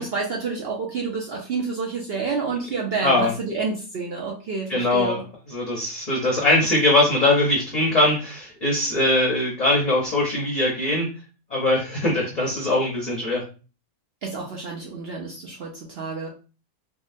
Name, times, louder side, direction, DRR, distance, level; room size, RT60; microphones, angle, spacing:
voice 1, 0.0-5.2 14.2-16.3, right 4 dB, 65° right, -1 dB, 0.6 m, -29 dB
voice 2, 4.7-5.2 5.5-11.1 11.5-13.4, left 1 dB, 40° left, -3 dB, 0.6 m, -21 dB
3.6 x 2.1 x 2.5 m, 0.35 s
omnidirectional pair, 1.6 m